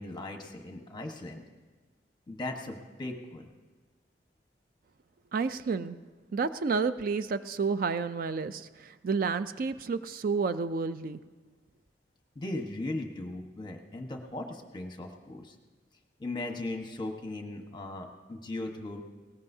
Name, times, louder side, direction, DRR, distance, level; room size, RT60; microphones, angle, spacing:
voice 1, 0.0-1.4 2.3-3.5 12.3-15.5 16.2-19.0, left 2 dB, 25° left, 3 dB, 1.2 m, -38 dB
voice 2, 5.3-6.0 6.3-11.2, right 4 dB, 50° right, 12 dB, 0.4 m, -30 dB
20.0 x 18.0 x 2.7 m, 1.3 s
head